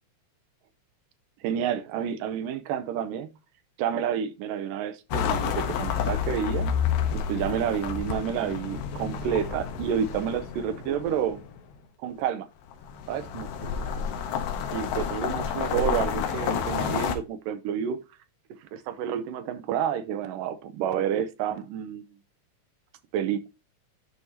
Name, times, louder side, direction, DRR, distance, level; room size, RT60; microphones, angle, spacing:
voice 1, 1.4-3.3 3.8-6.7 7.1-11.4 12.0-12.5 13.1-13.9 14.7-18.0 18.6-22.1 23.1-23.5, right 8 dB, 80° right, 2.3 m, -29 dB
sound 1, 5.1-11.6 12.7-17.2, left 7 dB, 80° left, 2.6 m, -30 dB
11.0 x 4.8 x 2.8 m
omnidirectional pair, 3.8 m